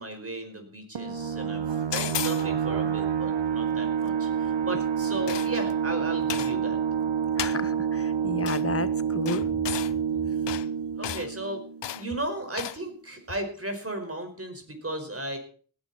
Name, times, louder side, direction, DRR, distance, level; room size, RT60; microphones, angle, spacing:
voice 1, 0.0-6.8 11.0-11.6 11.9-15.4, right 1 dB, 30° right, 5 dB, 5.1 m, -35 dB
sound 1, 0.9-12.2, right 7 dB, 75° right, 1.2 m, -28 dB
sound 2, 1.9-2.5 5.3-5.7 6.3-6.6 7.4-7.6 8.5-8.6 9.3-9.9 10.5-10.7 11.0-11.3 11.8-12.1 12.6-12.8, left 11 dB, 70° left, 0.6 m, -33 dB
voice 2, 7.4-9.4, left 4 dB, 30° left, 14 dB, 1.1 m, -32 dB
18.0 x 10.5 x 4.3 m, 0.42 s
cardioid pair, 55°, 43 cm